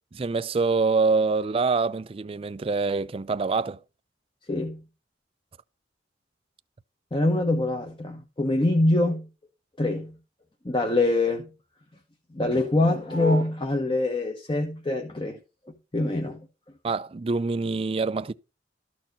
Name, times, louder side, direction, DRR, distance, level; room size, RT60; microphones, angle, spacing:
voice 1, 0.1-3.8 16.8-18.3, right 4 dB, 30° right, 0.4 m, -25 dB
voice 2, 4.5-4.8 7.1-9.3 9.8-10.2 10.6-11.5 12.3-15.4 15.9-16.5, left 2 dB, 30° left, 1.1 m, -24 dB
13.0 x 4.5 x 5.4 m
head